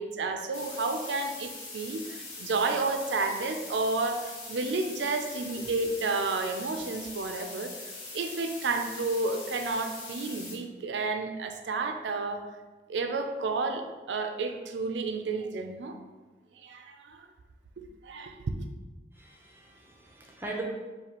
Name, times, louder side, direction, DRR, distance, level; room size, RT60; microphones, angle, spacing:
voice 1, 0.0-7.7 8.1-12.4 12.9-16.0 16.6-17.3 17.8-18.7, right 3 dB, 85° right, 6 dB, 0.4 m, -31 dB
sound 1, 0.5-10.5, left 3 dB, 45° left, 1.4 m, -42 dB
voice 2, 19.1-20.6, right 2 dB, 10° right, -1 dB, 0.6 m, -41 dB
6.6 x 2.7 x 2.9 m, 1.3 s
head